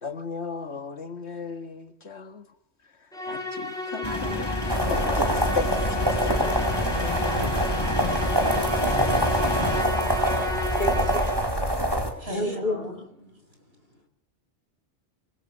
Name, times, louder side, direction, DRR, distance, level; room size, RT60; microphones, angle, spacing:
voice 1, 0.0-2.5 3.3-7.6, left 4 dB, 75° left, 2.1 m, -36 dB
Musical instrument, 3.1-11.6, left 1 dB, 5° left, 7.6 m, -33 dB
sound 1, 4.0-9.8, left 2 dB, 25° left, 1.3 m, -30 dB
sound 2, 4.7-12.1, right 1 dB, 20° right, 4.5 m, -25 dB
voice 2, 10.8-11.8 12.2-13.1, left 1 dB, 45° left, 3.3 m, -32 dB
voice 3, 11.7-12.9 13.2-13.6 13.9-14.0, equal, 65° right, 6.8 m, -42 dB
27.0 x 21.0 x 6.9 m
omnidirectional pair, 1.1 m